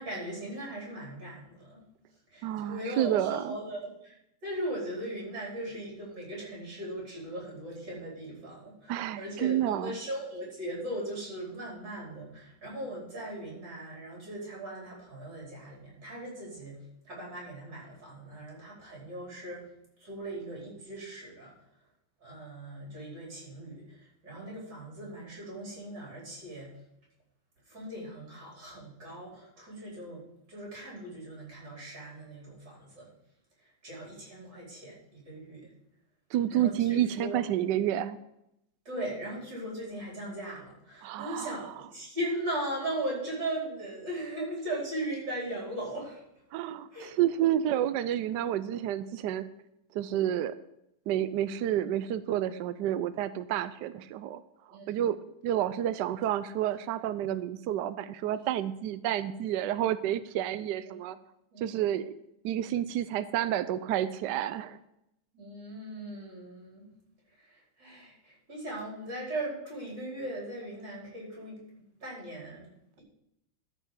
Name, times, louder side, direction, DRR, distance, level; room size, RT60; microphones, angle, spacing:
voice 1, 0.0-1.9 2.3-16.8 17.1-19.7 20.0-21.5 22.2-26.7 27.7-30.2 30.5-33.1 33.6-35.7 36.5-37.5 38.9-46.2 46.9-47.2 54.7-55.1 60.9-61.0 61.5-61.9 65.3-66.9 67.4-71.6 72.0-72.7, right 1 dB, 55° right, -5 dB, 5.3 m, -39 dB
voice 2, 2.4-3.6 8.9-9.9 36.3-38.2 41.0-41.5 46.5-49.5 49.9-50.6 51.1-54.4 54.9-55.2 55.4-61.2 61.6-62.1 62.4-64.8, right 11 dB, 80° right, 13 dB, 1.0 m, -29 dB
13.5 x 5.6 x 6.1 m, 0.82 s
omnidirectional pair, 2.3 m